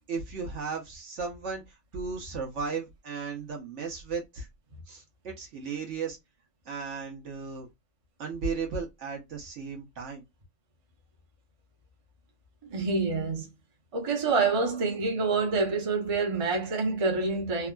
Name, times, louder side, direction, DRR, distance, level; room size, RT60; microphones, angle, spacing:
voice 1, 0.1-4.5 4.9-6.2 6.7-7.7 8.2-10.2, right 5 dB, 65° right, 1.2 m, -35 dB
voice 2, 12.7-13.5 13.9-17.7, right 4 dB, 30° right, 0.7 m, -27 dB
3.5 x 2.0 x 2.3 m
omnidirectional pair, 1.4 m